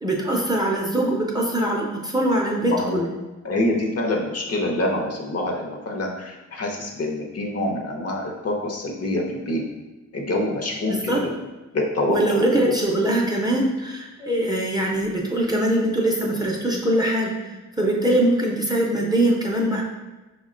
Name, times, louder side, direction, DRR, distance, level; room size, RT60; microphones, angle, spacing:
voice 1, 0.0-3.1 10.9-11.2 12.1-17.3 17.8-19.8, right 1 dB, 15° right, -3 dB, 0.5 m, -22 dB
voice 2, 2.6-3.0 3.4-9.6 10.1-11.4 11.7-12.7, left 1 dB, 55° left, 0 dB, 0.7 m, -26 dB
5.3 x 2.1 x 3.6 m, 1.1 s
wide cardioid pair, 155°, 30 cm